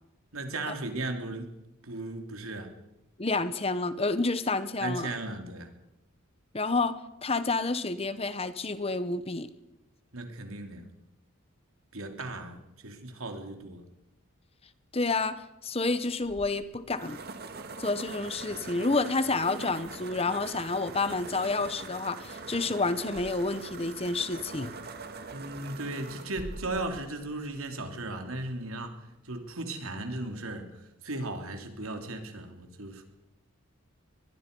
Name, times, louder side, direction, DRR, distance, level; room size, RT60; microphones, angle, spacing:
voice 1, 0.3-1.5 1.8-2.7 4.8-5.7 10.1-10.8 11.9-12.6 12.8-13.8 25.3-28.9 29.2-30.7 31.0-33.0, right 2 dB, 75° right, 5 dB, 3.3 m, -36 dB
voice 2, 3.2-5.1 6.5-9.5 14.9-17.2 17.8-24.7, left 3 dB, 25° left, 13 dB, 0.9 m, -29 dB
sound 1, 16.2-28.0, right 3 dB, 45° right, 1.8 m, -43 dB
24.0 x 21.0 x 5.4 m, 0.91 s
head